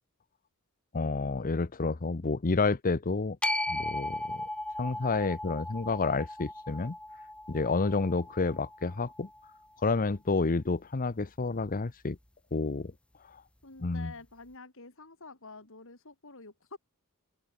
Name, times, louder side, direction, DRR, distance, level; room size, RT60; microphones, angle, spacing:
voice 1, 0.9-3.4 3.7-4.4 4.8-7.0 7.5-9.3 9.8-12.2 12.5-12.9 13.3-13.4 13.8-14.1, left 3 dB, 40° left, 0.7 m, -29 dB
sound 1, 3.4-9.6, left 1 dB, 5° left, 0.7 m, -37 dB
voice 2, 13.6-16.8, left 3 dB, 65° left, 3.6 m, -48 dB
head